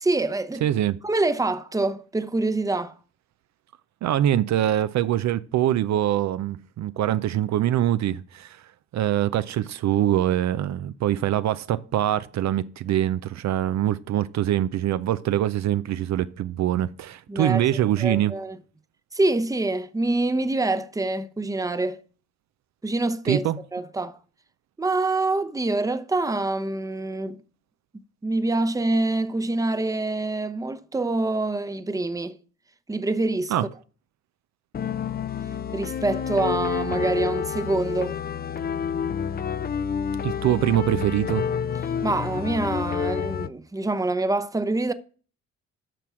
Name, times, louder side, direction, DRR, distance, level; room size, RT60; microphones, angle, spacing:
voice 1, 0.0-0.6 1.0-2.9 17.3-17.6 18.0-18.6 19.1-22.0 22.8-23.4 23.7-24.2 24.8-27.4 28.2-32.4 32.9-33.5 35.7-38.1 42.0-44.9, right 2 dB, 10° right, 0.8 m, -25 dB
voice 2, 0.6-1.0 4.0-8.6 8.9-18.3 23.2-23.6 33.5-33.7 40.2-41.5, right 12 dB, 65° right, 0.5 m, -24 dB
sound 1, 34.7-43.5, left 7 dB, 30° left, 0.5 m, -29 dB
9.0 x 6.1 x 6.1 m
cardioid pair, 90°, 30 cm